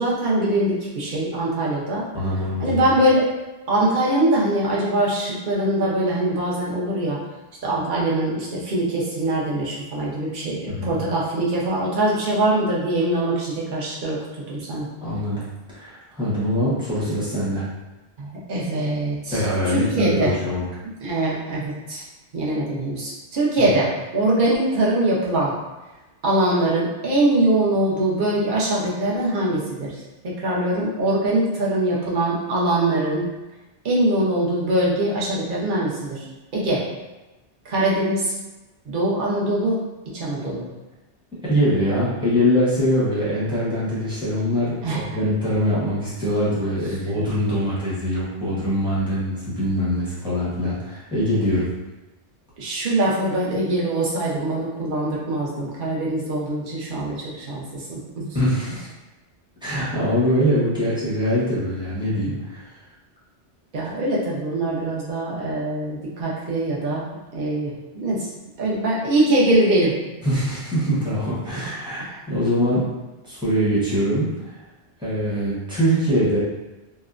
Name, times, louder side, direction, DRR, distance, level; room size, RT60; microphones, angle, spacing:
voice 1, 0.0-2.1 2.6-3.3 3.7-7.2 7.6-14.2 14.5-14.9 18.2-20.4 21.0-22.0 22.3-25.6 26.2-33.3 33.8-36.2 36.5-36.8 37.6-38.3 38.9-39.8 40.1-40.7 44.8-45.2 52.6-58.3 63.7-68.3 68.6-70.1 71.5-71.6 72.1-72.2, right 1 dB, 50° right, -5 dB, 0.8 m, -23 dB
voice 2, 2.1-2.8 10.7-11.0 15.0-15.4 15.7-17.6 19.3-20.7 41.4-44.7 45.1-51.7 58.3-58.9 59.6-62.6 70.2-72.8 73.2-74.6 75.0-76.4, equal, 5° right, -10 dB, 0.8 m, -23 dB
2.8 x 2.1 x 2.4 m, 1.1 s
omnidirectional pair, 1.2 m